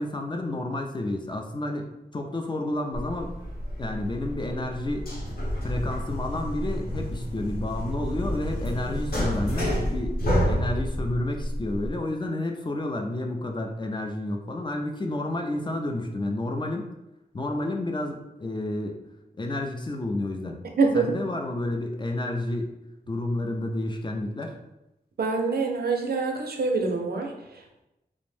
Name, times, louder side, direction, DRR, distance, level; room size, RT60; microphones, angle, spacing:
voice 1, 0.0-3.3 3.8-5.1 5.6-10.2 10.5-16.9 17.3-19.0 19.3-20.6 20.9-22.7 23.1-24.5, left 1 dB, 30° left, 3 dB, 0.3 m, -30 dB
sound 1, 2.9-12.0, equal, 70° left, 0.9 m, -29 dB
voice 2, 20.8-21.1 25.2-27.8, right 4 dB, 75° right, 3 dB, 0.5 m, -25 dB
2.5 x 2.0 x 3.2 m, 0.91 s
wide cardioid pair, 85°, 16 cm